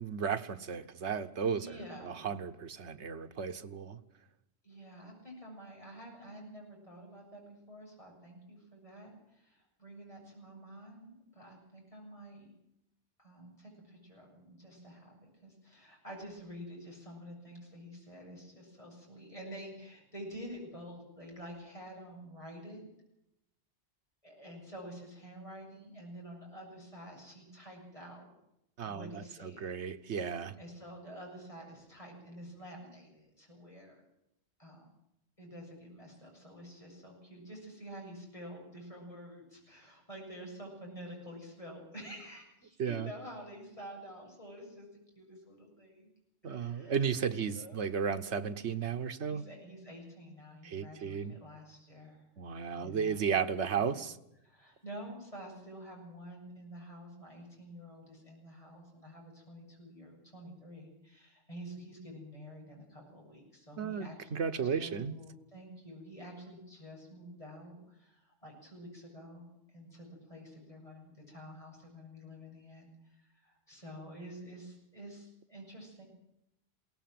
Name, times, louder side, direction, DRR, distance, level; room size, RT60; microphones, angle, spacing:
voice 1, 0.0-4.0 28.8-30.6 42.8-43.1 46.4-49.4 50.6-51.3 52.4-54.2 63.8-65.2, right 6 dB, 90° right, 8 dB, 1.3 m, -34 dB
voice 2, 1.5-2.4 4.6-12.5 13.2-22.8 24.2-28.3 28.8-29.7 30.6-34.0 34.6-34.9 35.4-46.1 46.5-47.0 47.5-47.8 49.3-52.3 52.7-53.3 53.8-54.1 54.4-69.5 69.7-76.0, equal, 30° left, -1 dB, 7.9 m, -49 dB
21.5 x 18.0 x 7.8 m, 0.83 s
omnidirectional pair, 1.1 m